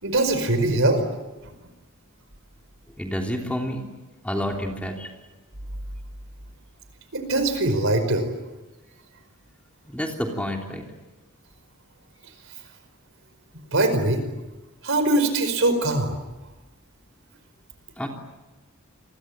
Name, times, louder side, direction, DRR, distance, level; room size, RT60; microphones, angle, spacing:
voice 1, 0.0-1.0 1.4-1.5 7.1-8.3 13.7-14.2 14.8-16.2, right 2 dB, 60° right, 8 dB, 5.1 m, -22 dB
voice 2, 3.0-3.9 4.2-5.1 9.8-10.8 18.0-18.1, equal, 5° left, 1 dB, 3.3 m, -29 dB
28.5 x 23.0 x 8.9 m, 1.1 s
head